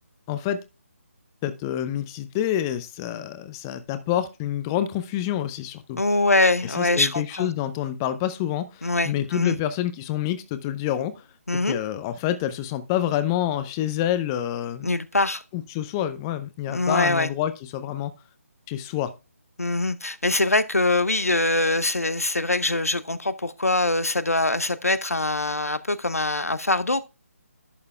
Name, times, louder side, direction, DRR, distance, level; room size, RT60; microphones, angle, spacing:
voice 1, 0.3-0.6 1.4-6.0 6.6-11.2 11.7-14.9 15.5-18.1 18.7-19.1, left 11 dB, 15° left, 0.4 m, -27 dB
voice 2, 6.0-7.5 8.8-9.6 11.5-11.8 14.8-15.4 16.7-17.3 19.6-27.0, left 2 dB, 85° left, 0.7 m, -23 dB
11.0 x 6.6 x 2.2 m
figure-of-eight pair, 150°, 8 cm